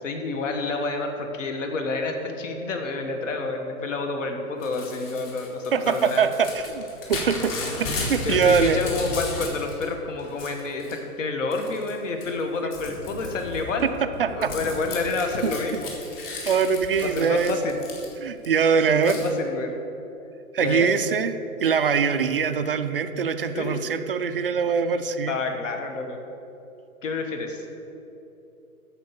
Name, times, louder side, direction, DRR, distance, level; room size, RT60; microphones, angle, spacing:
voice 1, 0.0-6.2 8.2-13.9 14.3-15.9 17.0-17.8 18.9-19.7 20.6-20.9 23.5-23.8 25.3-26.2 27.0-27.6, left 3 dB, 55° left, 4 dB, 1.5 m, -29 dB
Crumpling crinkling / Tearing, 4.6-9.8 10.2-11.0 11.5-11.9 12.2-18.5 19.0-19.3, left 3 dB, 40° left, 2.1 m, -34 dB
voice 2, 5.7-8.8 12.6-12.7 13.8-13.9 14.2-14.5 15.4-15.5 16.5-17.6 18.2-19.2 20.5-21.4 21.6-25.4, right 6 dB, 40° right, 9 dB, 0.4 m, -23 dB
13.0 x 4.5 x 6.9 m, 2.9 s
hypercardioid pair, 155°, 44 cm